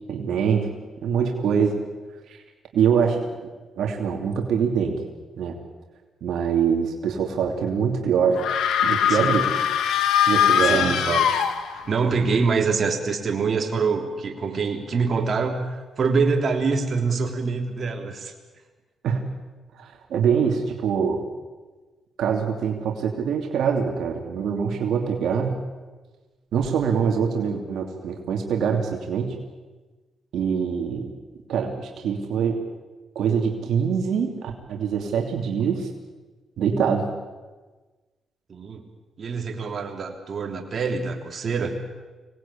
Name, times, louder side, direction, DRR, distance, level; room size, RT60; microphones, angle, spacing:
voice 1, 0.1-0.7 1.0-1.8 2.3-2.4 2.7-3.2 3.8-5.0 5.4-5.6 6.2-8.4 8.8-9.5 10.2-11.0 19.0-19.3 19.8-21.2 22.2-25.6 26.5-29.3 30.3-31.1 31.5-32.6 33.1-35.9 36.6-37.1, right 7 dB, 80° right, 2 dB, 2.8 m, -24 dB
sound 1, 8.4-12.0, left 9 dB, 90° left, 1.6 m, -21 dB
voice 2, 9.1-9.4 10.6-11.3 11.7-18.3 38.5-38.8 39.2-41.7, right 4 dB, 50° right, 2 dB, 3.5 m, -25 dB
25.0 x 19.0 x 8.7 m, 1.3 s
cardioid pair, 95°, 0 cm